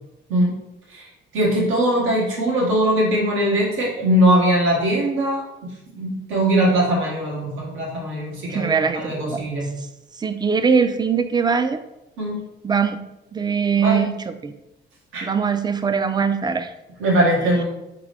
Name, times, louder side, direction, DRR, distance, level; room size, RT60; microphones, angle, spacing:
voice 1, 1.3-5.4 5.9-9.6 12.2-12.4 13.8-14.0 15.1-15.3 17.0-17.6, right 1 dB, 85° right, -3 dB, 1.6 m, -20 dB
voice 2, 8.5-9.4 10.2-11.8 12.6-13.0 13.3-14.5 15.2-16.7, right 6 dB, 20° right, 9 dB, 0.4 m, -21 dB
3.9 x 3.7 x 3.4 m, 0.91 s
cardioid pair, 90°, 20 cm